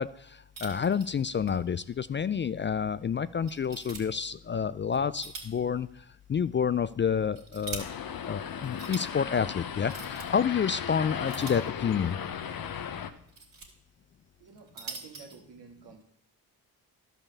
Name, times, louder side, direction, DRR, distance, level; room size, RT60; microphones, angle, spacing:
voice 1, 0.0-7.9 8.3-12.2, left 7 dB, 30° left, 16 dB, 0.4 m, -29 dB
sound 1, 0.5-1.6 1.9-2.0 2.6-2.7 3.5-4.0 4.9-5.6 6.0-6.1 7.0-7.8 8.6-9.0 9.8-10.3 11.3-12.1 13.0-13.7 14.5-15.4, right 4 dB, 50° right, 3.1 m, -43 dB
sound 2, 7.8-13.1, left 8 dB, 55° left, 1.0 m, -36 dB
voice 2, 14.4-16.0, right 5 dB, 75° right, 2 dB, 2.3 m, -51 dB
11.5 x 5.5 x 6.9 m, 0.72 s
supercardioid pair, 50°, 41 cm